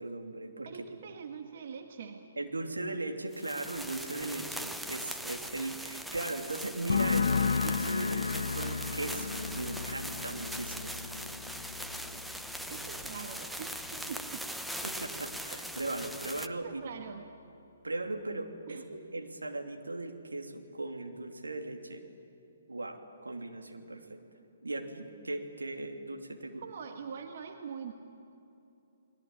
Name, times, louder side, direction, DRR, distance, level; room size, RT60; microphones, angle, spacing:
voice 1, 0.0-0.9 2.4-10.9 14.8-16.8 17.8-22.0 22.7-24.2 24.6-26.6, right 2 dB, 80° right, 4 dB, 2.9 m, -38 dB
voice 2, 0.6-2.2 12.7-14.4 15.5-15.6 16.6-17.3 18.7-18.8 26.6-27.9, right 6 dB, 50° right, 5 dB, 1.7 m, -43 dB
sound 1, 3.3-16.5, equal, ahead, 0.8 m, -41 dB
sound 2, 6.9-14.4 14.6-15.2, left 5 dB, 65° left, 0.9 m, -34 dB
30.0 x 21.0 x 8.9 m, 2.7 s
figure-of-eight pair, 130°, 0 cm